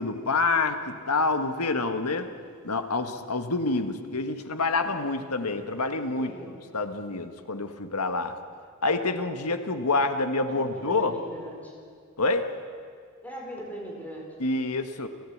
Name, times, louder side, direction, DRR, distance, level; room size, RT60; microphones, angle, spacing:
voice 1, 0.0-2.3 2.6-8.4 8.8-11.2 12.2-12.5 14.4-15.1, left 3 dB, 90° left, 7 dB, 1.6 m, -27 dB
voice 2, 6.2-6.5 10.5-11.7 13.2-14.3, equal, 5° left, -1 dB, 4.6 m, -39 dB
29.0 x 13.5 x 8.7 m, 2.1 s
head